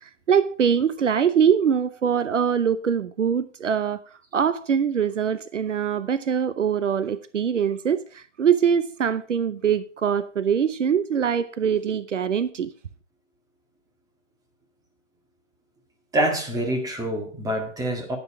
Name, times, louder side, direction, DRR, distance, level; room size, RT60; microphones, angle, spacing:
voice 1, 0.0-4.0 4.3-12.7, right 7 dB, 75° right, 0.8 m, -23 dB
voice 2, 16.1-18.2, right 1 dB, 10° right, 1.9 m, -26 dB
10.0 x 9.4 x 4.9 m
figure-of-eight pair, 125°, 37 cm